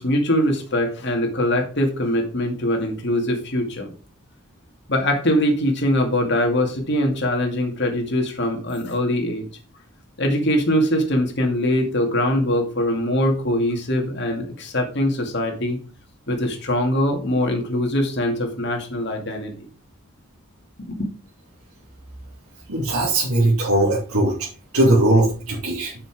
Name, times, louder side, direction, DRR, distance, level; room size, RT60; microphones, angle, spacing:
voice 1, 0.0-3.9 4.9-9.4 10.2-15.8 16.3-19.5 20.9-21.1, left 1 dB, 50° left, 3 dB, 2.3 m, -22 dB
voice 2, 22.7-24.5 24.7-25.9, right 1 dB, 85° right, -4 dB, 3.0 m, -19 dB
7.1 x 6.8 x 4.8 m, 0.37 s
head